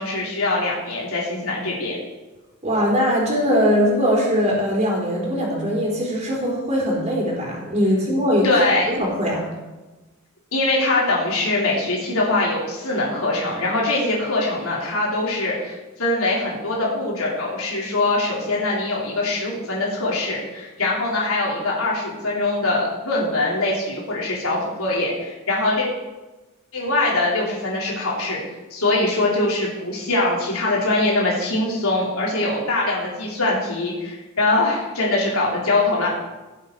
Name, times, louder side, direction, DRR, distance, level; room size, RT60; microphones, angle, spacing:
voice 1, 0.0-2.0 8.4-8.9 10.5-25.9 26.7-28.4 28.7-36.2, left 2 dB, 75° left, -4 dB, 3.5 m, -22 dB
voice 2, 2.6-8.5 9.0-9.4, equal, 30° right, -2 dB, 4.0 m, -21 dB
17.0 x 8.1 x 4.6 m, 1.1 s
head